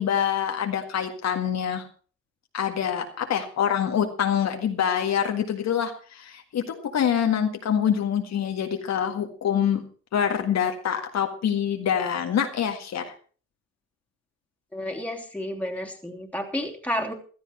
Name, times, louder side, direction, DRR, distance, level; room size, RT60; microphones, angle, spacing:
voice 1, 0.0-1.8 2.5-9.8 10.1-13.1, left 8 dB, 60° left, 4 dB, 1.9 m, -25 dB
voice 2, 14.7-17.1, equal, 5° left, 2 dB, 3.1 m, -31 dB
15.5 x 12.5 x 4.5 m, 0.41 s
cardioid pair, 90°, 30 cm